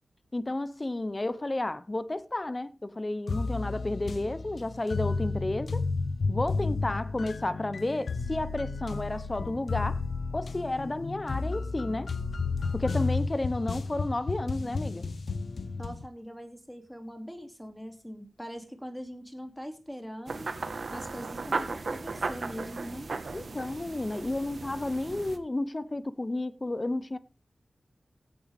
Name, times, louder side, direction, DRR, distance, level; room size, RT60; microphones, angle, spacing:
voice 1, 0.3-5.8 6.3-10.0 10.3-12.1 12.7-15.0 23.3-27.2, left 2 dB, 25° left, 0.8 m, -32 dB
sound 1, 3.3-16.1, left 4 dB, 70° left, 1.0 m, -32 dB
voice 2, 15.8-20.5 20.9-23.1, equal, 5° left, 2.8 m, -42 dB
sound 2, 20.3-25.4, right 3 dB, 65° right, 1.5 m, -36 dB
16.5 x 8.9 x 3.6 m
wide cardioid pair, 90°, 0 cm